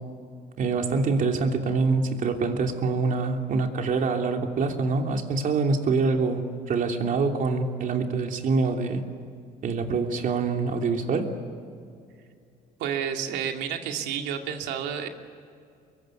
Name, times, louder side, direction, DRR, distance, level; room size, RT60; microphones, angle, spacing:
voice 1, 0.6-9.0 9.6-11.3, right 4 dB, 50° right, 3 dB, 3.1 m, -25 dB
voice 2, 12.8-15.1, right 8 dB, 90° right, 4 dB, 2.5 m, -30 dB
25.0 x 22.5 x 9.6 m, 2.3 s
cardioid pair, 110°, 17 cm